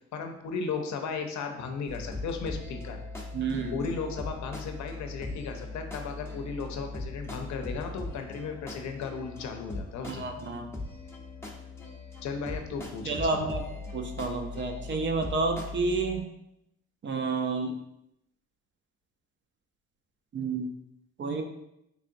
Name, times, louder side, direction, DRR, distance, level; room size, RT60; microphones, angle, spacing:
voice 1, 0.1-3.0 3.7-10.2 12.2-13.4, left 5 dB, 70° left, 5 dB, 0.6 m, -35 dB
sound 1, 1.9-16.2, left 3 dB, 10° left, 0.6 m, -40 dB
voice 2, 3.3-3.8 10.1-10.7 13.0-13.7 13.9-16.3 17.0-17.8 20.3-20.7 21.2-21.4, right 3 dB, 40° right, 4 dB, 0.5 m, -30 dB
3.6 x 3.3 x 2.6 m, 0.82 s
cardioid pair, 90°, 30 cm